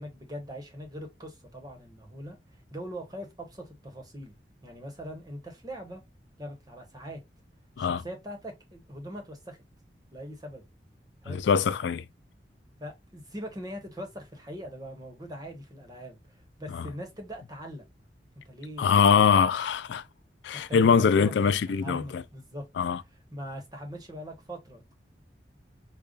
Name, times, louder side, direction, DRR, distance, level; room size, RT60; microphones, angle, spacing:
voice 1, 0.0-2.4 2.7-4.4 4.6-6.0 6.4-7.2 7.8-9.6 10.1-10.6 11.2-11.4 12.8-17.8 18.3-19.0 20.5-21.3 21.7-22.7 23.3-24.8, equal, 20° right, 1.0 m, -41 dB
voice 2, 11.3-12.0 16.7-16.9 18.8-20.0 20.4-22.2 22.8-23.0, left 6 dB, 90° left, 0.3 m, -23 dB
5.1 x 2.3 x 2.4 m
head